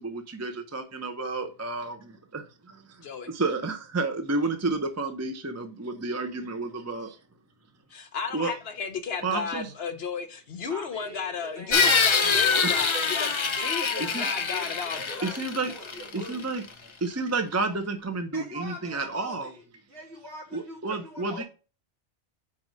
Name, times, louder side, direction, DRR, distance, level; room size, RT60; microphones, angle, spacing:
voice 1, 0.0-7.2 8.3-8.5 9.2-9.7 12.6-12.9 14.0-14.3 15.2-15.7 16.1-19.5 20.5-21.4, right 3 dB, 20° right, 0.5 m, -31 dB
voice 2, 7.9-13.3 13.6-15.3, left 6 dB, 65° left, 1.0 m, -34 dB
voice 3, 10.7-13.4 13.8-14.7 15.0-16.5 18.3-21.4, equal, 65° right, 3.2 m, -42 dB
sound 1, 11.7-16.4, left 5 dB, 35° left, 0.5 m, -25 dB
4.9 x 4.7 x 5.1 m
omnidirectional pair, 1.2 m